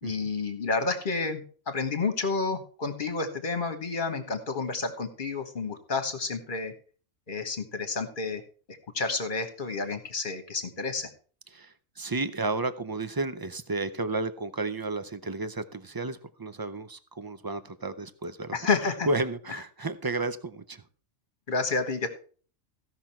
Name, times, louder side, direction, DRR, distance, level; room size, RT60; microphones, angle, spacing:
voice 1, 0.0-6.7 7.3-8.4 8.9-11.1 18.5-19.1 21.5-22.1, left 4 dB, 40° left, 8 dB, 1.6 m, -30 dB
voice 2, 11.5-18.6 19.1-20.8, right 3 dB, 30° right, 12 dB, 0.4 m, -32 dB
15.5 x 6.0 x 4.4 m, 0.40 s
omnidirectional pair, 1.3 m